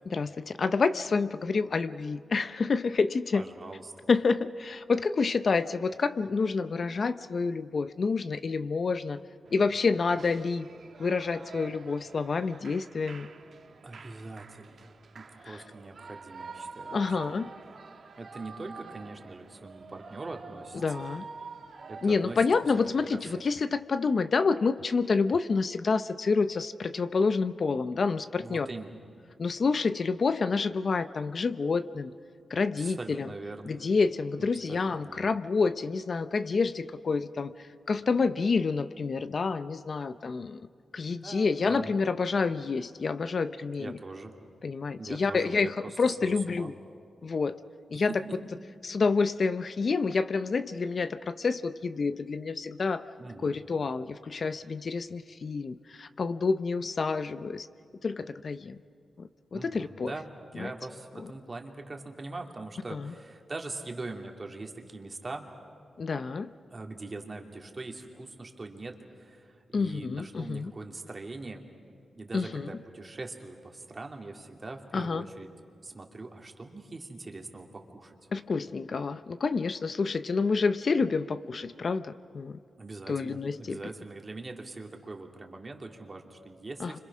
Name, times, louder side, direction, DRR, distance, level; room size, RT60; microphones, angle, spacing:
voice 1, 0.1-3.4 4.1-9.2 9.5-10.7 11.0-13.3 15.4-15.6 16.9-17.5 20.8-21.3 22.0-28.7 29.4-32.1 32.5-33.3 33.7-40.7 40.9-44.0 44.6-46.7 47.2-47.6 47.9-48.1 48.8-53.0 53.4-57.7 58.0-58.8 59.2-60.1 60.5-60.7 62.9-63.1 66.0-66.5 69.7-70.7 72.3-72.7 74.9-75.3 78.3-82.6 83.1-83.8 86.8-87.0, left 4 dB, 50° left, 12 dB, 0.7 m, -28 dB
voice 2, 3.3-3.9 13.8-17.4 18.2-21.0 21.9-22.4 22.8-22.9 23.2-23.4 28.4-29.1 32.8-33.7 34.4-35.2 41.2-42.0 43.8-44.3 45.0-46.7 47.9-48.4 53.2-53.6 59.5-65.5 66.7-71.6 72.2-75.5 75.8-78.1 82.8-87.0, right 3 dB, 35° right, 2 dB, 2.8 m, -42 dB
Shout / Cheering, 9.5-23.3, right 4 dB, 60° right, 1.3 m, -47 dB
29.5 x 26.0 x 6.2 m, 2.4 s
cardioid pair, 90°, 0 cm